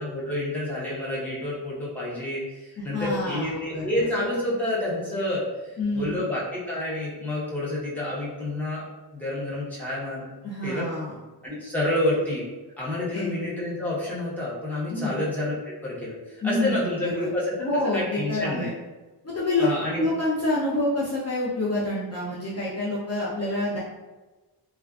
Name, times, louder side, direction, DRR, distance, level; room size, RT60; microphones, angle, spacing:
voice 1, 0.0-8.8 9.1-10.3 10.6-10.9 11.4-12.4 12.8-17.7 17.9-18.7 19.6-20.0, left 1 dB, 5° left, -7 dB, 0.8 m, -29 dB
voice 2, 2.8-4.1 5.8-6.2 10.4-11.2 13.1-13.3 14.9-15.2 16.4-17.3 17.6-18.7 19.2-19.7 19.9-23.8, left 2 dB, 40° left, -7 dB, 0.6 m, -27 dB
2.4 x 2.3 x 2.3 m, 1.2 s
wide cardioid pair, 95°, 41 cm